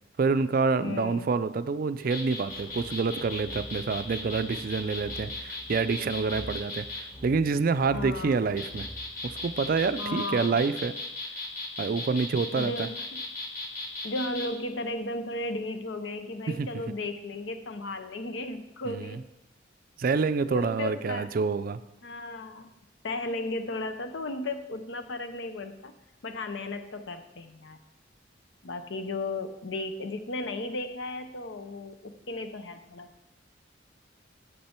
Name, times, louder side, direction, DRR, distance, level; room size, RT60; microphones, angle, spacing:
voice 1, 0.2-8.9 9.2-10.9 11.8-12.9 16.5-16.8 18.9-19.2 20.0-21.8, right 4 dB, 50° right, 12 dB, 0.4 m, -27 dB
voice 2, 0.8-1.3 7.9-8.4 10.0-10.5 12.5-13.0 14.0-19.2 20.5-21.3 22.0-22.7 23.0-25.9 26.2-27.8 28.6-33.1, left 2 dB, 75° left, 8 dB, 0.7 m, -35 dB
sound 1, 2.0-7.0 8.3-14.5, left 2 dB, 50° left, 1.3 m, -37 dB
sound 2, 2.5-10.0, equal, 25° left, 2.4 m, -46 dB
8.6 x 6.8 x 4.4 m, 0.90 s
head